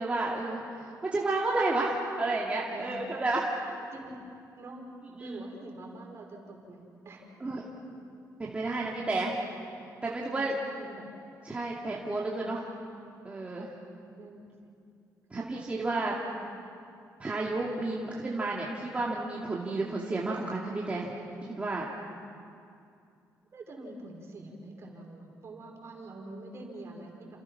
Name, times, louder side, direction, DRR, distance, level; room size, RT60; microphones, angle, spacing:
voice 1, 0.0-3.5 5.2-5.4 7.4-7.7 8.4-9.4 10.0-10.6 11.4-12.6 13.2-13.7 15.3-16.2 17.2-21.1 21.4-21.9, right 2 dB, 20° right, -4 dB, 2.5 m, -31 dB
voice 2, 3.9-4.8 5.2-7.3 10.1-11.1 12.2-12.4 13.5-13.7 14.2-14.8 15.3-15.5 16.2-16.5 23.5-27.4, right 2 dB, 45° right, 1 dB, 5.6 m, -46 dB
30.0 x 28.0 x 6.0 m, 2.5 s
cardioid pair, 130°, 6 cm